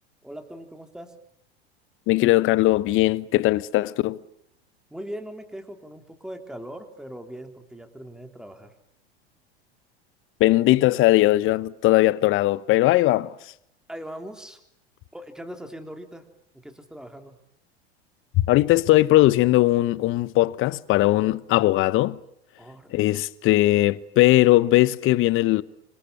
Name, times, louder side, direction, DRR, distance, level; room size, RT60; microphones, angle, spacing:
voice 1, 0.2-1.2 4.9-8.7 13.9-14.6 15.1-16.3 16.5-17.4 22.6-23.0, equal, ahead, 3.5 m, -40 dB
voice 2, 2.1-4.2 10.4-13.3 18.4-22.2 22.9-25.6, left 17 dB, 40° left, 1.1 m, -19 dB
27.5 x 25.5 x 8.4 m
hypercardioid pair, 85°, 31 cm